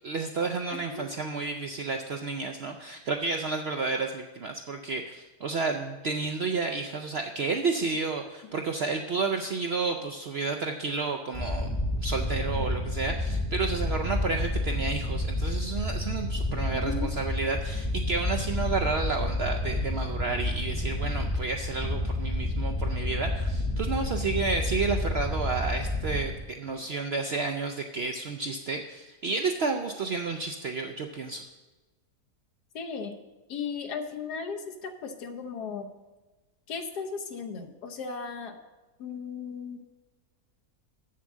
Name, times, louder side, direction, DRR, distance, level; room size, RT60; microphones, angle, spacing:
voice 1, 0.0-11.7 12.0-31.4, right 4 dB, 70° right, 4 dB, 0.6 m, -31 dB
voice 2, 0.7-1.1 16.7-17.1 32.7-33.1 33.5-35.9 36.7-38.6 39.0-39.8, left 5 dB, 85° left, 5 dB, 1.5 m, -36 dB
sound 1, 11.3-26.4, left 1 dB, 15° left, 0.8 m, -30 dB
7.3 x 7.0 x 7.2 m, 1.2 s
omnidirectional pair, 1.7 m